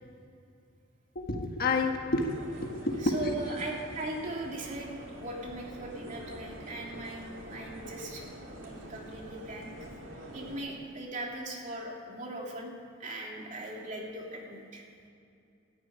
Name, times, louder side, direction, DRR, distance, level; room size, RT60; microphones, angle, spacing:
voice 1, 1.1-3.5, left 2 dB, 50° left, 3 dB, 1.6 m, -30 dB
sound 1, 2.2-10.6, right 1 dB, 80° right, 3.3 m, -46 dB
voice 2, 3.0-9.7 10.3-12.7 13.0-14.8, right 2 dB, 40° right, -1 dB, 2.9 m, -39 dB
14.0 x 10.5 x 9.8 m, 2.5 s
head